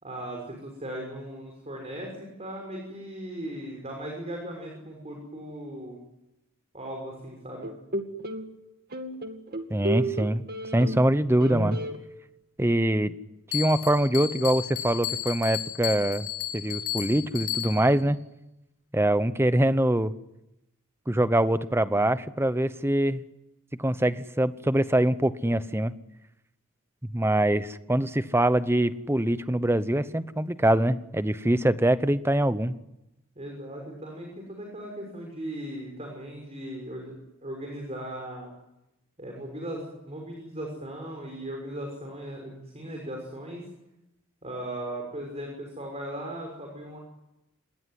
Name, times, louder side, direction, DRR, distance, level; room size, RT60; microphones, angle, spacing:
voice 1, 0.0-6.0 6.7-7.7 33.3-37.1 37.4-38.5 39.2-43.7 44.4-47.0, right 1 dB, 30° right, 1 dB, 6.2 m, -38 dB
sound 1, 7.6-8.5 8.9-11.1 11.4-12.0, right 1 dB, 45° right, 2.3 m, -32 dB
voice 2, 9.7-10.4 10.7-11.8 12.6-13.1 13.5-16.3 16.5-18.2 18.9-20.1 21.1-23.2 23.8-25.9 27.1-32.7, right 1 dB, 10° right, 13 dB, 0.9 m, -24 dB
Bell, 13.5-18.0, left 12 dB, 70° left, 4.0 m, -33 dB
26.5 x 21.0 x 9.5 m, 0.92 s
head